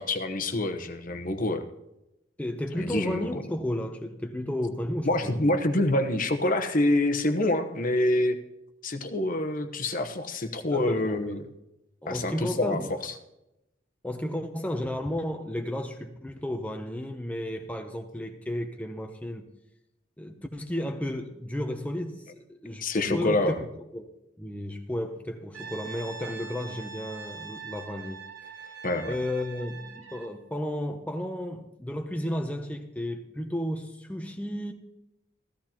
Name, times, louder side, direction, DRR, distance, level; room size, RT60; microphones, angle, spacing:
voice 1, 0.0-1.6 2.8-3.3 5.0-8.4 8.8-11.4 12.1-13.1 22.8-23.6 28.8-29.2, left 1 dB, 45° left, 7 dB, 1.0 m, -26 dB
voice 2, 2.4-5.4 10.7-11.4 12.0-12.9 14.0-19.5 20.2-23.7 23.9-24.1 24.4-28.3 28.6-28.8 29.1-34.7, left 1 dB, 5° left, 4 dB, 0.7 m, -33 dB
Brass instrument, 25.5-30.4, right 5 dB, 90° right, 2.9 m, -43 dB
15.0 x 14.0 x 3.0 m, 0.88 s
head